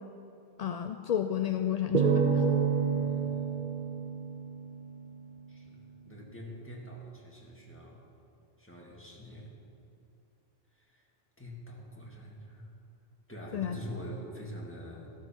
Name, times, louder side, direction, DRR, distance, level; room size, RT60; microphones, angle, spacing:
voice 1, 0.6-2.4 13.5-13.8, left 10 dB, 55° left, 7 dB, 0.4 m, -31 dB
sound 1, 1.9-5.3, right 6 dB, 50° right, 0.8 m, -29 dB
voice 2, 3.0-3.6 5.5-8.0 8.6-9.5 10.8-11.0 11.4-12.7 13.3-15.1, equal, 10° left, -3 dB, 2.1 m, -45 dB
14.5 x 12.5 x 4.5 m, 2.7 s
omnidirectional pair, 1.1 m